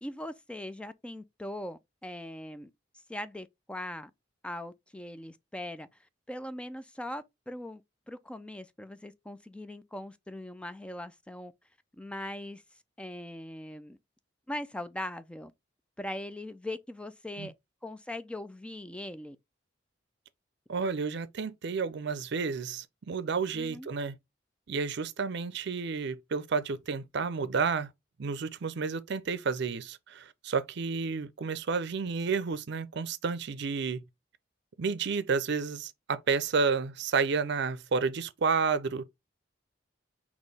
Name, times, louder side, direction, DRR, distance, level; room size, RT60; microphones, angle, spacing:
voice 1, 0.0-2.7 3.1-4.1 4.4-5.9 6.3-7.8 8.1-11.5 12.0-12.6 13.0-14.0 14.5-15.5 16.0-17.5 17.8-19.4 23.5-23.9, left 1 dB, 5° left, 0.3 m, -40 dB
voice 2, 20.7-24.2 24.7-27.9 28.2-34.0 34.8-39.0, right 5 dB, 65° right, 0.5 m, -31 dB
4.3 x 2.9 x 3.3 m
head